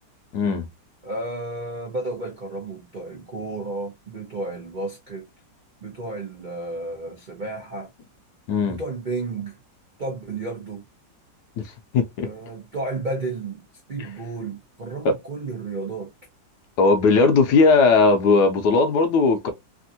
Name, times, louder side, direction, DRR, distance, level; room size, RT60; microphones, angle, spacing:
voice 1, 0.3-0.7 8.5-8.8 11.6-12.3 16.8-19.5, left 4 dB, 70° left, 1.1 m, -18 dB
voice 2, 1.0-5.3 5.8-7.9 8.6-9.6 10.0-10.8 12.2-13.6 13.9-16.1, right 2 dB, 70° right, 0.4 m, -32 dB
3.5 x 2.5 x 2.6 m
omnidirectional pair, 2.1 m